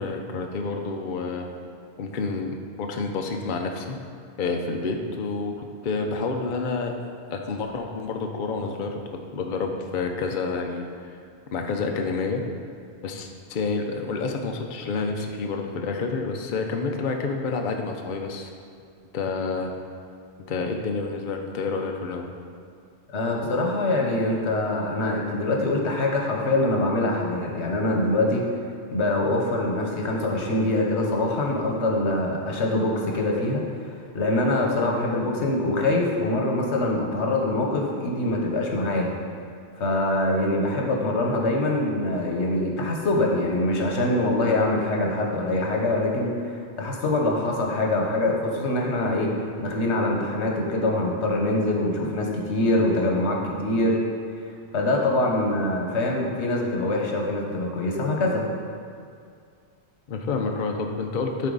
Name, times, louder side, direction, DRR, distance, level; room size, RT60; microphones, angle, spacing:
voice 1, 0.0-1.5 2.0-4.0 4.4-6.9 7.3-9.0 9.3-11.2 11.5-12.4 13.0-18.5 19.1-19.7 20.5-22.3 60.1-61.5, left 4 dB, 55° left, 3 dB, 0.7 m, -29 dB
voice 2, 23.1-28.4 28.9-33.6 34.1-39.1 39.8-49.3 49.6-54.0 54.7-58.4, left 2 dB, 85° left, 0 dB, 1.3 m, -24 dB
10.5 x 4.3 x 3.9 m, 2.3 s
omnidirectional pair, 1.1 m